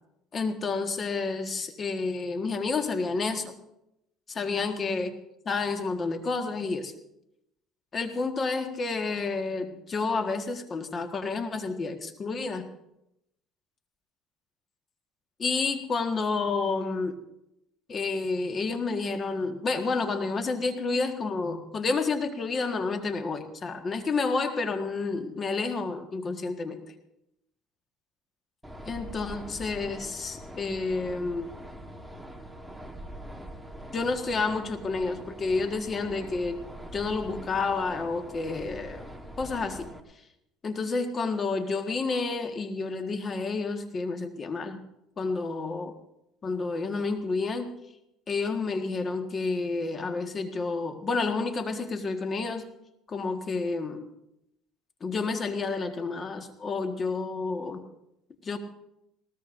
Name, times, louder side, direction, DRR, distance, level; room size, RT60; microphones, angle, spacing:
voice 1, 0.3-3.5 4.3-5.1 5.4-6.9 7.9-12.6 15.4-17.2 17.9-26.8 28.8-31.5 33.9-36.6 36.9-39.0 39.4-39.9 40.6-44.8 45.2-45.9 46.4-47.7 48.3-52.7 53.1-54.0 55.0-57.8 58.4-58.6, left 4 dB, 30° left, 6 dB, 1.6 m, -30 dB
sound 1, 28.6-40.0, equal, 5° right, 1.4 m, -43 dB
20.5 x 18.5 x 2.6 m, 0.84 s
supercardioid pair, 105°, 0 cm